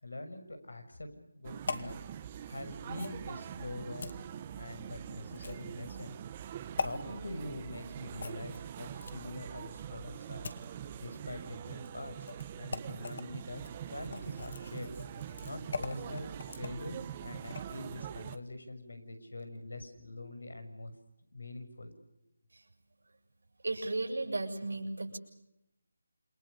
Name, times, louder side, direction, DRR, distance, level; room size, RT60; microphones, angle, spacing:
voice 1, 0.0-2.0 2.5-4.2 4.5-6.1 6.8-10.5 11.0-12.2 12.6-13.6 13.9-14.9 15.4-16.3 16.6-20.9 21.3-21.9, left 2 dB, 90° left, 8 dB, 6.7 m, -44 dB
sound 1, 1.4-18.4, right 9 dB, 20° right, 1.0 m, -44 dB
sound 2, 1.7-1.9 2.9-3.2 4.0-4.2 5.3-5.7 6.8-6.9 8.2-9.3 10.0-10.7 11.7-11.9 12.2-12.4 12.7-13.2 13.6-17.8 18.2-18.4, left 4 dB, 45° left, 2.1 m, -41 dB
voice 2, 23.6-25.2, right 2 dB, 75° right, 3 dB, 6.7 m, -35 dB
28.0 x 23.5 x 6.9 m, 0.86 s
figure-of-eight pair, 170°, 0 cm